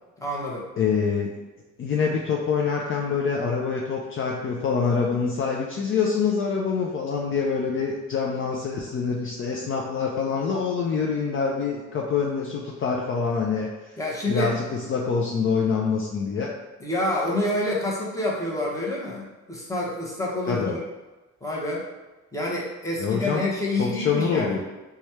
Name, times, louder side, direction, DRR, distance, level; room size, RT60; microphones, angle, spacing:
voice 1, 0.2-0.6 14.0-14.5 16.8-20.8 21.4-21.9 22.3-24.6, left 1 dB, 10° left, -4 dB, 1.1 m, -28 dB
voice 2, 0.8-1.3 1.8-13.9 14.3-16.5 20.5-20.7 23.0-23.4 23.8-24.6, left 5 dB, 45° left, -1 dB, 0.5 m, -25 dB
3.1 x 2.3 x 4.2 m, 1.1 s
cardioid pair, 90°, 30 cm